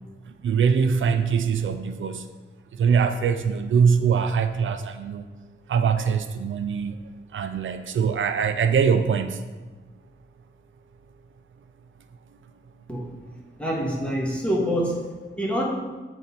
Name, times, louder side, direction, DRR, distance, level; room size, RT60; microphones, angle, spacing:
voice 1, 0.3-2.3 2.8-5.3 5.7-7.0 7.3-9.4, right 6 dB, 85° right, 9 dB, 0.4 m, -22 dB
voice 2, 13.6-15.6, equal, 5° left, -4 dB, 1.6 m, -26 dB
8.0 x 4.1 x 4.3 m, 1.3 s
wide cardioid pair, 95°, 20 cm